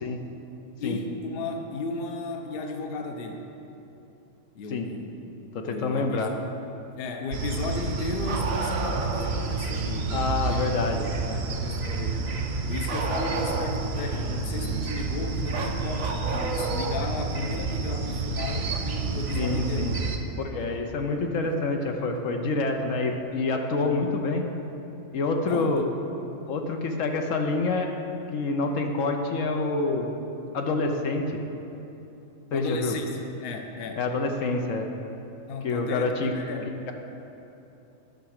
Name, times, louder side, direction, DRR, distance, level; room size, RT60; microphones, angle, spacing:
voice 1, 0.8-3.5 4.5-5.2 5.7-6.3 7.0-10.6 11.5-12.2 12.7-19.8 25.4-25.9 32.5-34.0 35.5-36.7, left 3 dB, 50° left, 4 dB, 0.9 m, -34 dB
voice 2, 5.5-6.3 10.1-11.4 19.3-19.9 20.4-24.5 25.1-25.9 26.5-27.9 28.3-30.1 30.5-31.4 32.5-33.0 34.0-34.9 35.6-36.3, left 3 dB, 75° left, 3 dB, 1.1 m, -27 dB
sound 1, 7.3-20.2, right 4 dB, 55° right, 1.0 m, -30 dB
Bark, 8.2-9.3 12.9-13.9 15.5-17.0 18.7-18.8 20.7-20.8 21.9-22.0, right 4 dB, 90° right, 1.3 m, -32 dB
11.0 x 5.8 x 6.4 m, 3.0 s
omnidirectional pair, 1.4 m